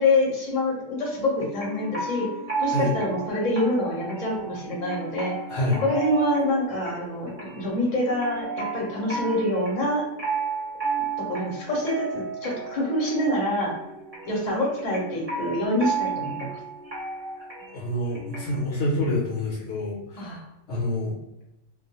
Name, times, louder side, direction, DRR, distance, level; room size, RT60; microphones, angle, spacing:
voice 1, 0.0-2.3 2.6-5.3 5.8-10.0 11.2-13.7 14.2-16.6 20.2-20.5, left 1 dB, 40° left, -4 dB, 0.8 m, -26 dB
sound 1, 1.0-18.6, right 4 dB, 30° right, 1.0 m, -34 dB
voice 2, 5.5-5.8 17.4-17.5 17.7-20.4 20.7-21.2, left 1 dB, 65° left, -4 dB, 0.9 m, -27 dB
2.3 x 2.2 x 2.8 m, 0.89 s
omnidirectional pair, 1.3 m